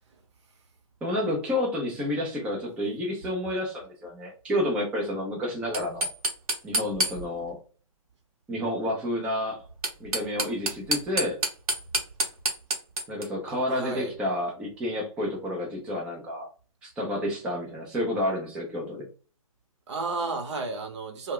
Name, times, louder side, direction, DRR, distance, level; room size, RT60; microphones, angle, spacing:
voice 1, 1.0-6.1 6.6-7.6 8.5-9.6 10.0-11.4 13.1-16.5 16.8-19.1, left 1 dB, 5° right, 0.4 m, -30 dB
sound 1, 5.6-7.5 9.6-13.3, right 1 dB, 80° right, 0.8 m, -29 dB
voice 2, 13.5-14.2 19.9-21.3, right 3 dB, 50° right, 0.8 m, -33 dB
2.1 x 2.1 x 3.7 m
hypercardioid pair, 140°, 19 cm